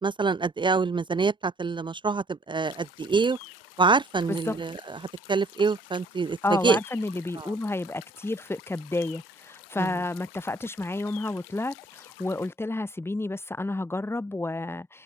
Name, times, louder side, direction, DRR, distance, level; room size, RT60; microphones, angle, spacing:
voice 1, 0.0-3.4 3.8-5.0 5.3-6.4 6.6-6.8 7.4-7.5 9.8-9.9, right 4 dB, 15° right, 0.6 m, -25 dB
sound 1, 2.6-12.5, left 21 dB, 75° left, 4.6 m, -49 dB
voice 2, 6.4-15.0, left 2 dB, 10° left, 1.5 m, -30 dB
open air
hypercardioid pair, 75°, 29 cm